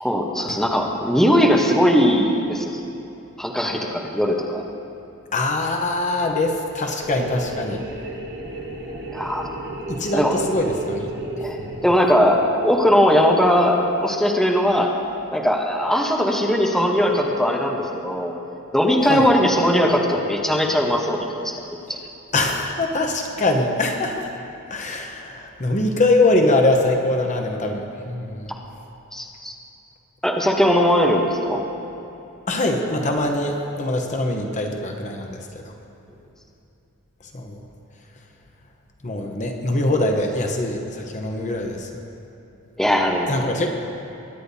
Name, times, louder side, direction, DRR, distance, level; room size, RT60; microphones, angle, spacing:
voice 1, 0.0-2.7 3.4-4.6 9.1-9.6 10.1-10.3 11.4-14.9 15.3-18.4 18.7-21.5 29.1-29.5 30.2-31.6 42.8-43.3, equal, ahead, -1 dB, 0.9 m, -19 dB
voice 2, 5.3-7.8 9.9-11.1 11.6-11.8 19.0-19.3 22.3-24.3 24.7-28.5 32.5-35.6 37.3-37.6 39.0-41.9 43.3-43.7, left 2 dB, 35° left, 3 dB, 0.8 m, -23 dB
sound 1, 7.0-12.7, right 1 dB, 50° right, 1.3 m, -33 dB
21.5 x 9.8 x 2.7 m, 2.9 s
head